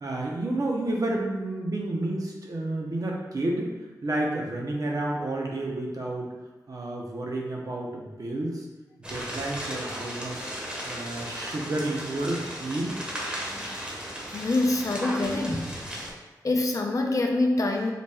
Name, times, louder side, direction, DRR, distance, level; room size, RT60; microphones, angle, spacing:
voice 1, 0.0-3.7 4.0-6.3 6.7-8.7 9.1-10.5 10.8-13.0, right 2 dB, 50° right, -1 dB, 0.6 m, -30 dB
sound 1, 9.0-16.1, equal, 15° right, 0.8 m, -36 dB
voice 2, 13.5-13.8 14.3-15.7 16.4-17.9, left 2 dB, 50° left, 2 dB, 0.4 m, -25 dB
4.0 x 2.2 x 3.3 m, 1.1 s
wide cardioid pair, 100°, 7 cm